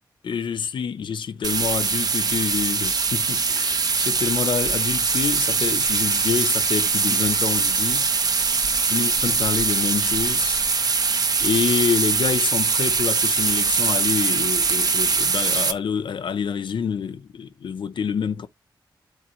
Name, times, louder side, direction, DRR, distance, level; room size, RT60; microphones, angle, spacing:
voice 1, 0.2-8.1 8.9-10.6 11.4-18.5, left 7 dB, 90° left, 0.8 m, -27 dB
sound 1, 1.4-15.7, right 4 dB, 55° right, 0.9 m, -22 dB
11.5 x 4.0 x 3.1 m
wide cardioid pair, 140°, 8 cm